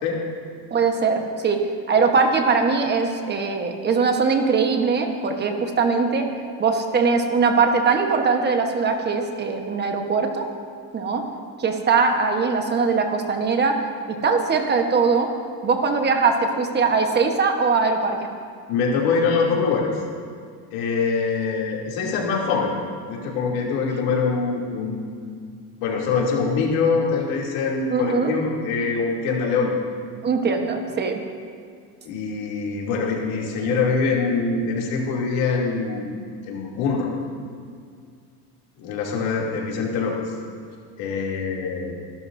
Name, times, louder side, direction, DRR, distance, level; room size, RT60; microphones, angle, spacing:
voice 1, 0.7-1.6 1.9-6.3 6.6-10.4 10.9-11.2 11.6-13.8 14.2-15.3 15.6-18.3 27.9-28.3 30.2-31.2, right 4 dB, 30° right, 4 dB, 1.2 m, -21 dB
voice 2, 18.7-20.0 20.7-22.7 23.1-25.1 25.8-29.7 32.1-36.1 36.5-37.1 38.8-40.3 41.0-42.0, left 4 dB, 85° left, -2 dB, 2.9 m, -24 dB
24.5 x 12.0 x 2.7 m, 2.2 s
cardioid pair, 140°, 36 cm